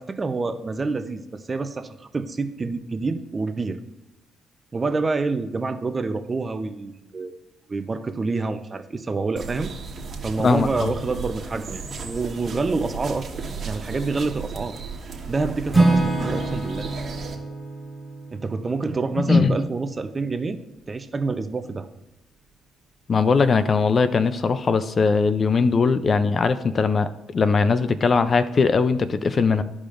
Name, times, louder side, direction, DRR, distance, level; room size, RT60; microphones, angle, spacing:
voice 1, 0.0-3.8 4.7-7.4 7.7-9.7 10.2-13.3 13.6-14.8 15.3-16.9 18.3-20.6 20.9-21.9, right 3 dB, 30° right, 9 dB, 0.6 m, -27 dB
sound 1, 9.4-17.4, right 5 dB, 50° right, 1.3 m, -35 dB
voice 2, 10.4-10.9 19.3-19.6 23.1-29.6, left 4 dB, 40° left, 12 dB, 0.4 m, -20 dB
Acoustic guitar / Strum, 15.7-19.8, right 2 dB, ahead, 2.0 m, -25 dB
13.5 x 5.0 x 2.5 m, 0.93 s
cardioid pair, 90°, 0 cm